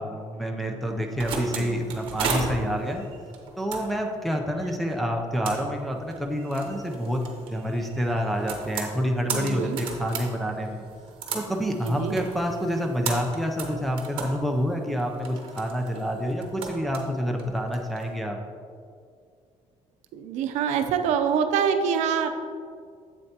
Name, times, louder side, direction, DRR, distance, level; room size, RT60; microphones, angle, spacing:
voice 1, 0.0-3.0 3.6-10.9 11.3-18.4, equal, ahead, 1 dB, 0.5 m, -28 dB
sound 1, 0.9-18.1, right 4 dB, 45° right, 1.0 m, -36 dB
voice 2, 9.3-9.8 11.8-12.2 20.1-22.3, right 7 dB, 90° right, 7 dB, 0.6 m, -25 dB
7.8 x 7.7 x 2.8 m, 2.2 s
cardioid pair, 180°, 12 cm